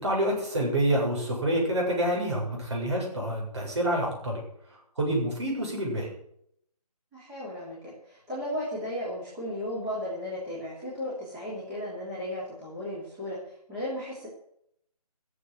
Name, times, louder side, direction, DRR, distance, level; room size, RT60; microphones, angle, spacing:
voice 1, 0.0-4.4 5.0-6.1, right 1 dB, 45° right, -1 dB, 7.8 m, -27 dB
voice 2, 7.1-14.3, left 1 dB, 10° right, -10 dB, 3.2 m, -35 dB
15.0 x 7.8 x 8.0 m, 0.70 s
hypercardioid pair, 175°, 20 cm